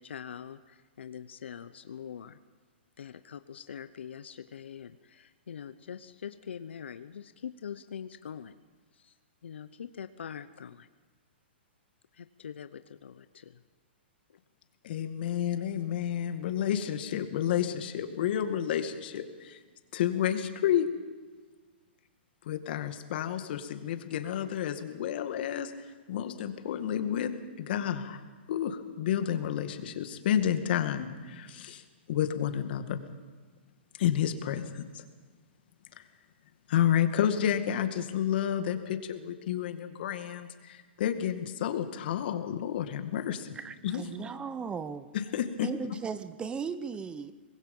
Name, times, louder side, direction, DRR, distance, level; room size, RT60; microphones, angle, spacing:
voice 1, 0.0-2.4 3.0-8.6 9.0-9.1 9.4-10.9 12.1-13.6, left 8 dB, 80° left, 12 dB, 0.8 m, -43 dB
voice 2, 14.8-19.6 19.9-20.9 22.5-25.7 26.1-28.2 28.5-31.8 32.1-33.0 34.0-35.0 36.0-36.1 36.7-43.6 43.8-44.3 45.1-45.7, left 10 dB, 60° left, 8 dB, 2.0 m, -30 dB
voice 3, 43.5-45.1 45.6-47.3, right 6 dB, 15° right, 13 dB, 0.8 m, -37 dB
24.5 x 20.5 x 5.5 m, 1.4 s
hypercardioid pair, 130°, 6 cm